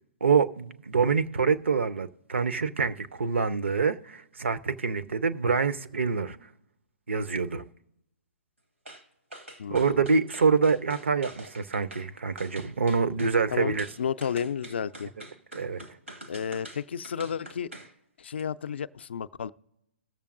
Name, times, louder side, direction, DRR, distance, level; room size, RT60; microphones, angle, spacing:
voice 1, 0.2-6.4 7.1-7.7 9.7-13.9 15.5-15.8, right 5 dB, 70° right, 0.6 m, -26 dB
sound 1, 8.9-9.0 9.3-12.1 12.4-13.4 13.8-17.9 18.3-18.4, right 1 dB, 85° right, 1.6 m, -45 dB
voice 2, 9.6-10.0 13.5-15.1 16.3-17.7 18.2-19.5, left 7 dB, 60° left, 0.4 m, -32 dB
19.0 x 6.9 x 2.5 m
figure-of-eight pair, 120°, 7 cm